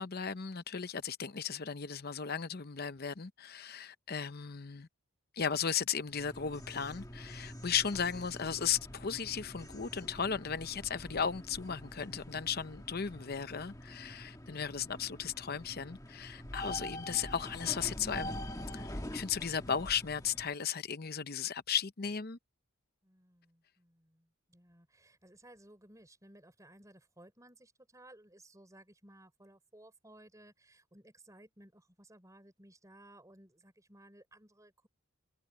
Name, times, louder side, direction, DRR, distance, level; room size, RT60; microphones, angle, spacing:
voice 1, 0.0-4.9 5.3-18.4 18.7-22.4, left 7 dB, 45° left, 0.7 m, -36 dB
sound 1, 6.1-20.5, left 1 dB, 15° left, 1.6 m, -45 dB
voice 2, 23.0-34.9, right 1 dB, 15° right, 4.9 m, -59 dB
head